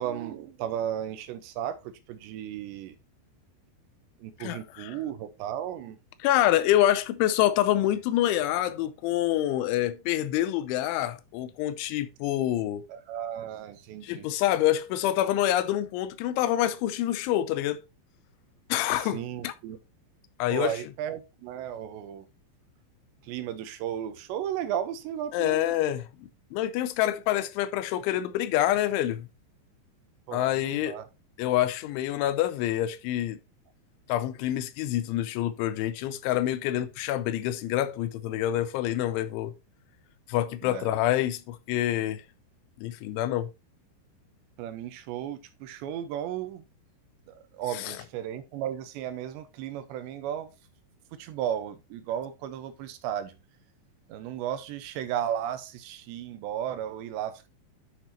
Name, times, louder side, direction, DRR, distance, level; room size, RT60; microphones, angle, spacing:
voice 1, 0.0-3.0 4.2-6.0 12.9-14.2 19.1-19.8 20.5-22.3 23.2-25.7 30.3-31.1 40.6-40.9 44.6-46.6 47.3-50.5 51.1-53.4 54.1-57.5, right 10 dB, 75° right, 2.9 m, -34 dB
voice 2, 4.4-5.0 6.2-12.9 14.0-17.8 18.7-19.5 20.4-20.8 25.3-29.3 30.3-31.0 31.4-33.4 34.1-39.5 40.3-42.2 42.8-43.5 47.7-48.0, left 13 dB, 85° left, 3.0 m, -27 dB
10.5 x 6.1 x 2.8 m
omnidirectional pair, 5.5 m